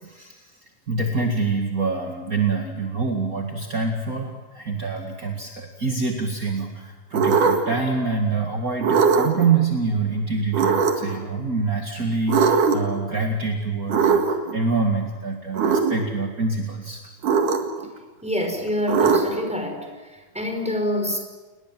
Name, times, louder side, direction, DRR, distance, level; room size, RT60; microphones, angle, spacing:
voice 1, 0.0-17.0, right 4 dB, 35° right, 2 dB, 1.5 m, -26 dB
sound 1, 7.1-7.8 8.8-9.5 10.5-11.2 12.3-13.0 13.9-14.5 15.5-16.0 17.2-17.9 18.9-19.5, right 5 dB, 55° right, 3.1 m, -20 dB
voice 2, 18.2-19.9 20.1-21.2, left 1 dB, ahead, 3 dB, 4.9 m, -26 dB
29.5 x 21.0 x 7.7 m, 1.3 s
omnidirectional pair, 4.7 m